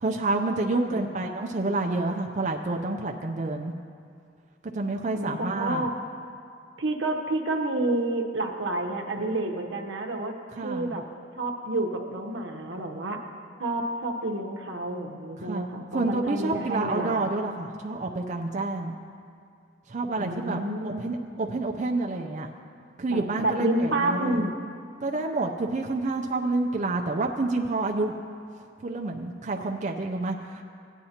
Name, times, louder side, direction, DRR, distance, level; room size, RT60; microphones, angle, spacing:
voice 1, 0.0-3.7 4.7-5.9 10.5-10.9 15.4-15.7 15.9-19.0 19.9-22.5 23.0-24.5 25.0-28.2 28.8-30.6, right 2 dB, 40° right, 2 dB, 0.5 m, -28 dB
voice 2, 0.9-1.3 5.1-5.9 6.8-10.3 10.6-11.0 11.4-13.2 13.6-17.3 20.2-21.2 23.1-24.6, right 2 dB, 85° right, 2 dB, 0.9 m, -29 dB
16.5 x 9.3 x 2.9 m, 2.3 s
head